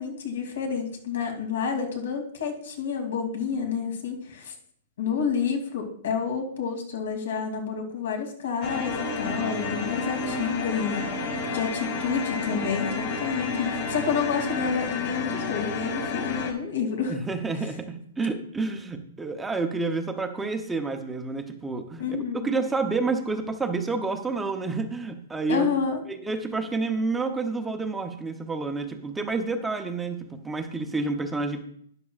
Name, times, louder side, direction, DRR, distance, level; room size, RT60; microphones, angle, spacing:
voice 1, 0.0-4.5 5.0-11.1 11.5-17.1 22.0-22.5 25.5-26.0, left 6 dB, 75° left, 4 dB, 2.5 m, -29 dB
sound 1, 8.6-16.5, left 3 dB, 35° left, 2.0 m, -30 dB
voice 2, 17.1-22.0 22.3-25.7 26.1-31.6, right 3 dB, 5° right, 5 dB, 0.6 m, -29 dB
12.0 x 11.0 x 2.4 m, 0.64 s
hypercardioid pair, 175°, 0 cm